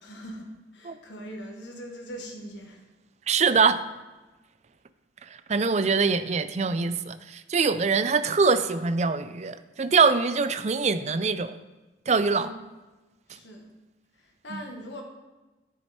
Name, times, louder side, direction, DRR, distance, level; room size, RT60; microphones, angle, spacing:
voice 1, 0.0-2.8 12.3-12.5 13.3-13.7 14.1-15.0, equal, 85° left, 2 dB, 1.6 m, -41 dB
voice 2, 3.3-3.8 5.5-11.5 12.1-12.5 14.5-14.6, right 4 dB, 40° right, 12 dB, 0.4 m, -23 dB
10.5 x 6.4 x 4.3 m, 1.1 s
head